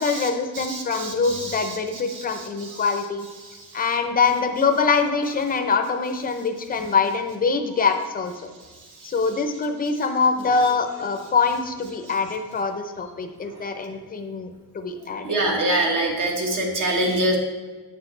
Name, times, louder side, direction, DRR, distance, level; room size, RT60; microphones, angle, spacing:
voice 1, 0.0-3.3 3.7-8.5 9.0-15.4, left 4 dB, 25° left, 6 dB, 0.6 m, -24 dB
voice 2, 0.5-1.8 2.1-2.8 3.4-3.6 9.0-9.1 15.2-17.4, right 1 dB, 55° right, 1 dB, 1.6 m, -25 dB
9.3 x 6.4 x 3.2 m, 1.4 s
cardioid pair, 165°, 38 cm